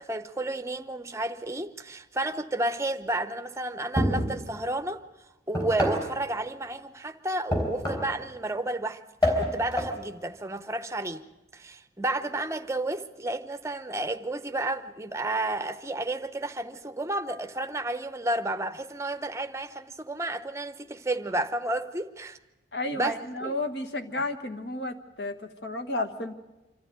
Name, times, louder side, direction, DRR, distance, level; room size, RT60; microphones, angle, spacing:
voice 1, 0.0-5.0 5.5-9.0 9.3-11.2 11.5-22.4 23.0-23.1 23.4-23.5, right 2 dB, 15° right, 0.7 m, -31 dB
sound 1, 4.0-4.4 5.5-6.1 7.5-8.2 9.2-10.0, equal, 25° left, 3.8 m, -27 dB
voice 2, 22.7-26.3, left 1 dB, 60° left, 1.4 m, -32 dB
25.5 x 13.0 x 9.2 m
head